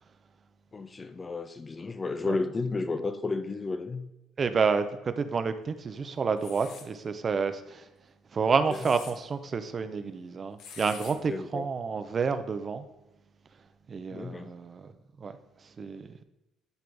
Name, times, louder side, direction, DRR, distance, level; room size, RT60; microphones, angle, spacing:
voice 1, 0.7-4.1 8.7-8.8 11.1-11.7 14.1-14.5, left 3 dB, 30° left, 10 dB, 0.5 m, -33 dB
voice 2, 4.4-7.9 8.3-12.8 13.9-14.9 15.2-15.3 15.8-16.2, right 5 dB, 40° right, 10 dB, 0.6 m, -29 dB
sound 1, 6.4-6.9 8.5-9.1 10.6-11.1, left 6 dB, 70° left, 0.9 m, -46 dB
10.5 x 3.9 x 3.4 m, 0.97 s
supercardioid pair, 85°, 0 cm